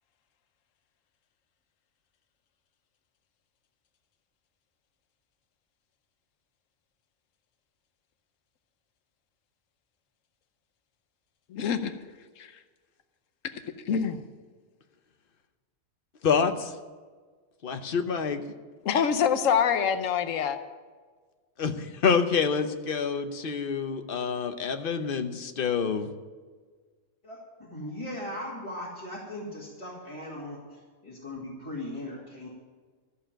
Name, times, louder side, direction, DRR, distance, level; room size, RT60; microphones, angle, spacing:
voice 1, 11.5-11.9 12.4-12.6 13.4-13.5 13.9-14.2 18.8-20.6, left 7 dB, 85° left, 9 dB, 1.2 m, -25 dB
voice 2, 16.2-16.7 17.6-18.4 21.6-26.1, left 6 dB, 50° left, 8 dB, 1.0 m, -27 dB
voice 3, 27.7-32.5, left 1 dB, 25° left, -7 dB, 2.5 m, -38 dB
14.0 x 7.0 x 8.9 m, 1.5 s
omnidirectional pair, 1.3 m